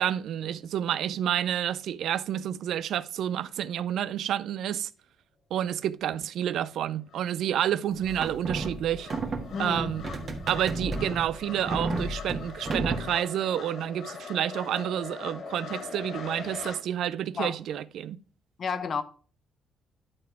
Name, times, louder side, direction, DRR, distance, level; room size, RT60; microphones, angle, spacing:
voice 1, 0.0-4.9 5.5-9.1 9.6-10.1 10.5-18.2, right 10 dB, 75° right, 0.4 m, -29 dB
sound 1, 6.7-6.8 7.1-16.8, left 5 dB, 70° left, 2.8 m, -42 dB
sound 2, 8.0-13.1, right 2 dB, 40° right, 1.6 m, -32 dB
voice 2, 9.5-9.9 10.2-10.4 17.4-17.5 18.6-19.0, left 6 dB, 50° left, 0.8 m, -31 dB
11.0 x 4.1 x 4.6 m
cardioid pair, 90°, 0 cm